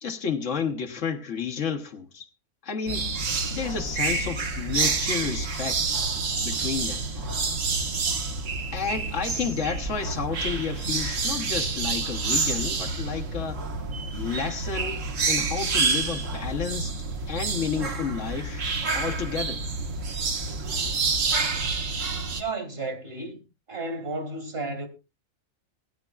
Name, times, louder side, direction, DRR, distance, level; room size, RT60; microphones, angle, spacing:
voice 1, 0.0-2.3 2.6-3.1 3.5-5.9 6.4-7.1 8.7-13.6 14.2-17.0 17.3-18.7 18.9-19.6, left 6 dB, 65° left, 1.4 m, -31 dB
sound 1, 2.9-22.4, right 4 dB, 65° right, 1.6 m, -28 dB
voice 2, 22.3-23.4 23.7-24.9, right 3 dB, 45° right, 2.3 m, -32 dB
19.5 x 10.5 x 2.4 m
omnidirectional pair, 1.4 m